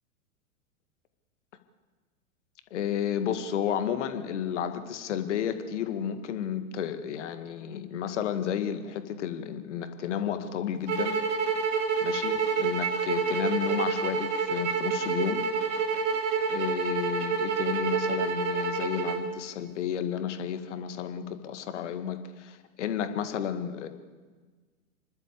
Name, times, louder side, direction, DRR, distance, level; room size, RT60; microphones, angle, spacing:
voice 1, 2.7-11.2 12.0-15.4 16.5-23.9, left 9 dB, 55° left, 9 dB, 2.0 m, -32 dB
sound 1, 10.9-19.2, right 5 dB, 55° right, 2.6 m, -28 dB
28.0 x 12.0 x 8.4 m, 1.4 s
figure-of-eight pair, 100°, 42 cm